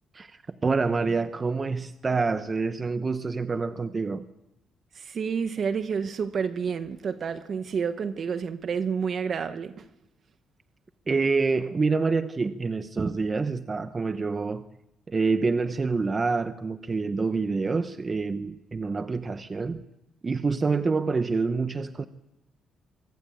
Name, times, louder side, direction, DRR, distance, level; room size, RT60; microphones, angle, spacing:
voice 1, 0.1-4.2 11.1-14.7 15.1-19.8 20.2-22.1, right 4 dB, 30° right, 0.9 m, -27 dB
voice 2, 5.0-9.8, right 6 dB, 50° right, 1.1 m, -29 dB
24.5 x 14.0 x 8.6 m
cardioid pair, 90°, 0 cm